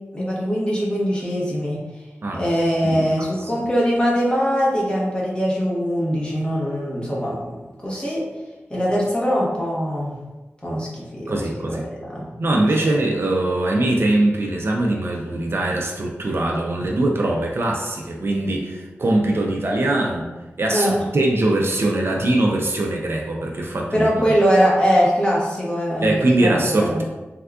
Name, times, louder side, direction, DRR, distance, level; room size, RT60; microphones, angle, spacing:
voice 1, 0.1-1.8 2.3-8.2 8.7-10.2 10.6-11.4 11.6-12.3 12.8-12.9 20.7-20.9 23.9-26.1 26.4-27.0, equal, 20° left, -5 dB, 0.9 m, -22 dB
voice 2, 11.3-11.9 12.4-20.3 20.6-24.1 26.0-27.0, right 1 dB, 55° right, -1 dB, 0.4 m, -21 dB
3.5 x 2.3 x 2.3 m, 1.1 s
wide cardioid pair, 60°, 5 cm